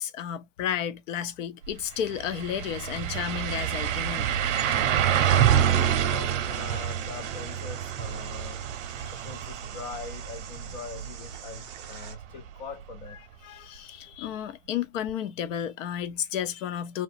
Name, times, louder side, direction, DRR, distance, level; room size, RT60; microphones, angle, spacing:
voice 1, 0.0-4.4 9.0-9.2 13.4-17.0, left 9 dB, 75° left, 0.7 m, -32 dB
sound 1, 1.6-1.7 2.1-11.8 12.2-12.3 15.1-15.2, right 9 dB, 65° right, 0.8 m, -27 dB
voice 2, 5.6-8.7 9.2-13.2, left 4 dB, 40° left, 0.5 m, -42 dB
sound 2, 6.5-12.1, right 8 dB, 35° right, 0.6 m, -47 dB
2.9 x 2.2 x 2.4 m
supercardioid pair, 170°, 38 cm